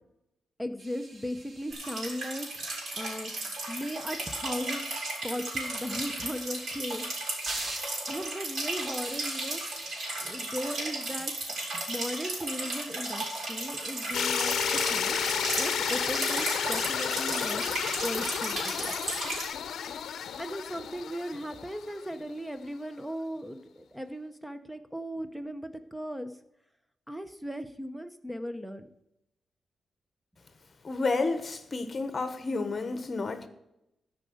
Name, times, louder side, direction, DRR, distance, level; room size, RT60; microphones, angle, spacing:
voice 1, 0.6-2.5 2.9-4.9 5.2-7.1 8.1-9.6 10.2-11.3 11.7-15.2 15.6-17.6 18.0-18.9 20.4-26.3 27.1-28.9, equal, 5° right, 0.8 m, -37 dB
sound 1, 0.8-3.9 5.4-6.0 6.8-7.1 7.4-7.9 8.7-10.1 11.4-11.6 11.9-12.0 12.3-12.4 13.7-14.2 15.8-16.6, right 2 dB, 35° right, 1.7 m, -44 dB
sound 2, 1.7-19.5, right 2 dB, 65° right, 4.1 m, -35 dB
sound 3, 14.1-22.1, left 8 dB, 80° left, 0.7 m, -32 dB
voice 2, 30.8-33.5, left 3 dB, 30° left, 1.1 m, -30 dB
13.0 x 5.2 x 7.7 m
wide cardioid pair, 150°, 0 cm